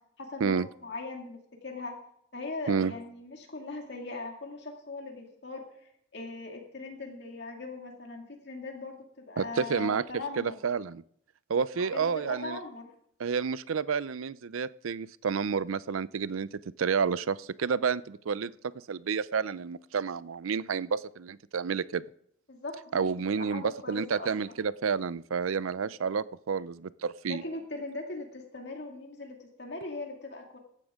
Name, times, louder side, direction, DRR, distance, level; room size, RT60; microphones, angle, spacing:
voice 1, 0.2-2.0 2.3-10.6 11.7-12.9 22.5-24.3 27.3-30.6, left 3 dB, 55° left, 2 dB, 2.2 m, -40 dB
voice 2, 9.4-10.0 10.4-11.0 11.5-12.6 13.2-16.5 16.8-18.5 18.9-22.0 22.9-27.4, right 6 dB, 90° right, 18 dB, 0.5 m, -30 dB
15.0 x 11.5 x 3.6 m, 0.69 s
head